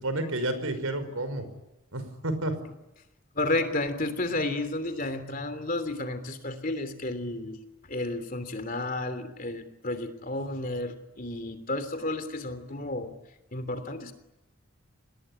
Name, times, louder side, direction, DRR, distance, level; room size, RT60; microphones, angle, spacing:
voice 1, 0.0-1.5 1.9-2.5, right 1 dB, 85° right, 11 dB, 5.6 m, -30 dB
voice 2, 3.3-7.6 7.9-13.1 13.5-14.1, left 2 dB, 40° left, 10 dB, 3.0 m, -32 dB
27.0 x 20.5 x 9.9 m, 0.96 s
head